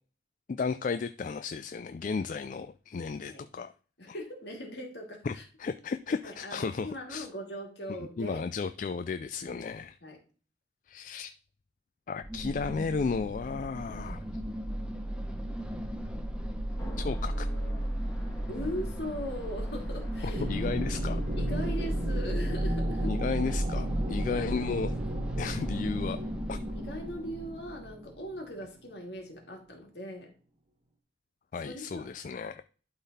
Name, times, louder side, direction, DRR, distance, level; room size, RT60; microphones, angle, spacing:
voice 1, 0.5-3.7 4.1-4.2 5.2-7.3 8.0-10.0 10.9-11.3 12.1-14.4 17.0-17.5 20.2-21.2 23.0-25.0 25.4-26.2 26.5-26.6 31.5-32.6, left 5 dB, 45° left, 11 dB, 0.3 m, -34 dB
voice 2, 4.0-5.4 6.2-8.4 9.4-9.7 10.0-10.2 18.5-20.6 21.4-23.1 26.7-30.3 31.6-32.1, equal, 60° left, 1 dB, 2.4 m, -40 dB
sound 1, 12.2-28.1, right 1 dB, 5° right, 0.8 m, -34 dB
sound 2, 16.7-22.3, right 1 dB, 10° left, 1.7 m, -47 dB
sound 3, 20.3-28.8, right 1 dB, 25° right, 1.0 m, -36 dB
11.5 x 3.9 x 4.1 m, 0.39 s
head